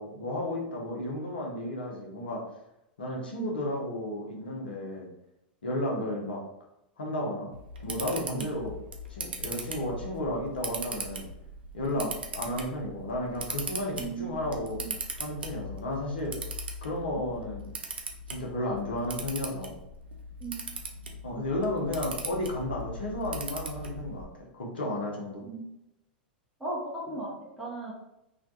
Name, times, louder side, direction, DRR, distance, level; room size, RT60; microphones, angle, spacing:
voice 1, 0.0-2.4 3.0-5.1 5.6-6.4 7.0-7.5 7.8-8.8 9.1-11.2 11.7-14.8 15.2-16.4 16.8-17.7 18.3-19.7 21.2-25.4, left 1 dB, 75° left, -1 dB, 0.8 m, -33 dB
Camera, 7.5-24.2, right 2 dB, 80° right, 0.4 m, -39 dB
voice 2, 14.0-14.4 14.8-14.9 20.4-20.6 21.3-21.4 25.4-25.6 26.6-27.9, right 3 dB, 5° right, -7 dB, 0.7 m, -37 dB
2.5 x 2.2 x 2.6 m, 0.85 s
hypercardioid pair, 95°, 5 cm